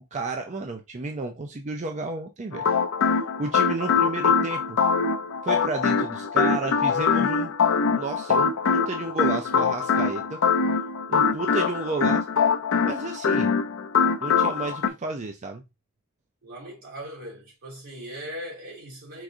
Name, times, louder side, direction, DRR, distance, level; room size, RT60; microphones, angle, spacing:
voice 1, 0.1-2.6 3.1-4.8 5.4-7.5 8.0-10.4 11.1-12.2 12.8-13.5 14.2-15.6, right 3 dB, 35° right, 0.5 m, -32 dB
sound 1, 2.5-14.9, left 5 dB, 60° left, 0.5 m, -23 dB
voice 2, 16.4-19.2, equal, 80° right, 2.7 m, -39 dB
4.7 x 2.6 x 3.7 m
head